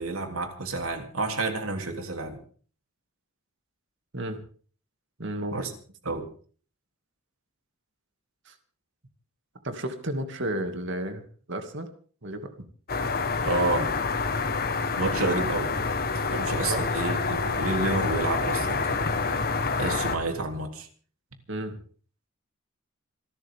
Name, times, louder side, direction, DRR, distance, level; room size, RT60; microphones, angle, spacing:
voice 1, 0.0-2.4 5.5-5.7 6.0-6.3 13.4-13.9 15.0-15.7 16.1-19.2 19.8-20.9, right 2 dB, 80° right, 4 dB, 3.3 m, -29 dB
voice 2, 5.2-5.6 8.5-8.6 9.6-11.9 12.2-12.5 15.0-15.5 16.7-16.8 21.5-21.8, right 1 dB, 60° right, 6 dB, 2.6 m, -33 dB
sound 1, 12.9-20.2, left 4 dB, 45° left, 1.6 m, -27 dB
27.0 x 13.5 x 3.8 m, 0.44 s
head